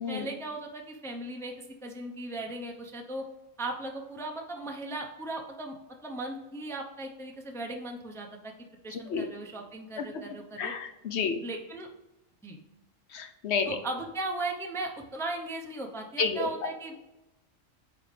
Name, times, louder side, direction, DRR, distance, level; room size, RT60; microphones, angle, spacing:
voice 1, 0.1-1.5 1.8-3.2 3.6-5.8 6.0-8.5 8.8-10.7 11.4-11.9 12.4-12.6 13.6-16.9, right 2 dB, 5° left, 2 dB, 0.6 m, -37 dB
voice 2, 8.9-9.3 10.0-10.1 10.6-11.4 13.1-13.8 16.2-16.7, left 5 dB, 60° left, 7 dB, 0.9 m, -30 dB
9.5 x 3.7 x 3.3 m, 0.99 s
omnidirectional pair, 1.3 m